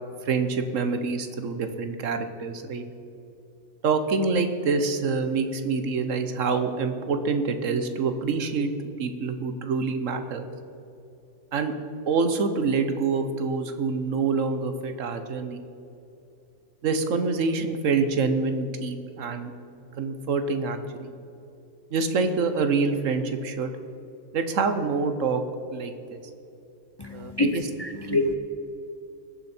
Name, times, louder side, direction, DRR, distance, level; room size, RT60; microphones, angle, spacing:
voice 1, 0.3-2.8 3.8-10.4 11.5-11.7 12.1-15.6 16.8-19.5 20.0-21.1 21.9-23.7 24.3-25.4 25.7-26.2 27.1-27.6 28.1-28.2, right 4 dB, 85° right, 8 dB, 1.4 m, -26 dB
voice 2, 27.0-28.3, left 2 dB, 30° left, 5 dB, 0.5 m, -27 dB
20.5 x 7.0 x 4.4 m, 2.8 s
omnidirectional pair, 1.3 m